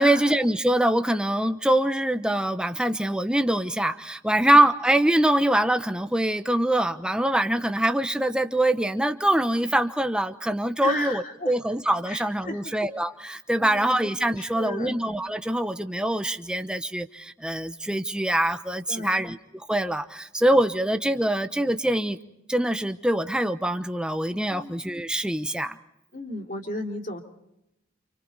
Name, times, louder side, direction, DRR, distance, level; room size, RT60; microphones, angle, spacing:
voice 1, 0.0-22.2 22.5-25.8, right 1 dB, 5° right, 8 dB, 0.9 m, -24 dB
voice 2, 10.8-11.5 12.1-12.6 13.6-14.0 14.4-15.0 18.9-19.2 24.5-24.8 26.1-27.2, left 2 dB, 40° left, 2 dB, 3.2 m, -34 dB
30.0 x 28.5 x 4.1 m, 0.83 s
head